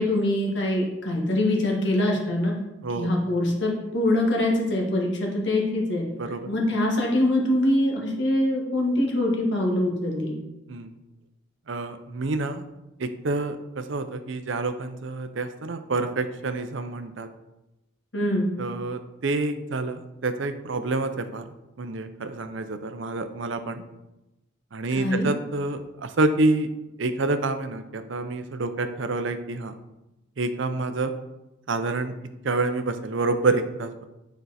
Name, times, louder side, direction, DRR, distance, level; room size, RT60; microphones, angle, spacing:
voice 1, 0.0-2.5 3.0-6.0 6.5-10.4 18.1-18.5 25.0-25.3, left 1 dB, 55° left, -1 dB, 1.6 m, -24 dB
voice 2, 6.2-6.5 10.7-10.9 11.7-12.6 13.0-17.3 18.6-21.4 21.8-23.8 24.7-26.7 27.0-29.7 30.4-31.1 31.7-32.1 32.4-34.1, right 2 dB, 60° right, 9 dB, 0.6 m, -28 dB
9.1 x 4.5 x 4.1 m, 0.97 s
head